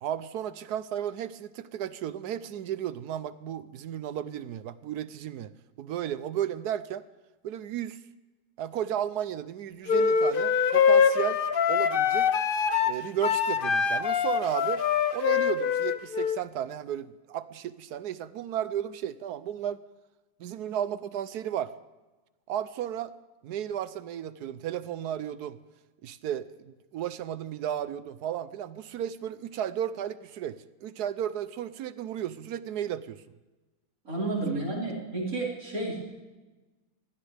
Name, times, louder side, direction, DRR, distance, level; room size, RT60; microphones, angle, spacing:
voice 1, 0.0-5.5 5.8-7.1 7.4-8.0 8.6-11.4 11.7-12.3 12.8-14.9 15.1-19.8 20.4-21.7 22.5-23.1 23.4-25.6 26.0-33.2, right 10 dB, 70° right, 15 dB, 1.1 m, -34 dB
sound 1, 9.9-16.4, left 6 dB, 60° left, 0.5 m, -24 dB
voice 2, 34.1-36.0, right 2 dB, 50° right, -4 dB, 5.2 m, -31 dB
21.5 x 16.5 x 3.4 m, 1.2 s
omnidirectional pair, 2.0 m